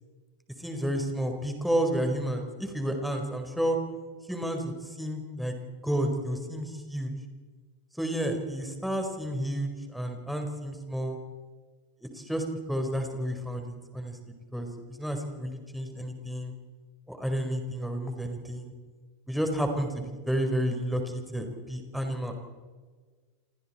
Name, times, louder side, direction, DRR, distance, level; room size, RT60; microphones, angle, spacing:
voice 1, 0.6-3.8 4.3-7.2 8.0-11.2 12.1-14.2 14.5-16.5 17.1-18.7 19.3-22.3, equal, ahead, 4 dB, 4.5 m, -31 dB
28.5 x 27.5 x 4.4 m, 1.5 s
figure-of-eight pair, 90°, 0 cm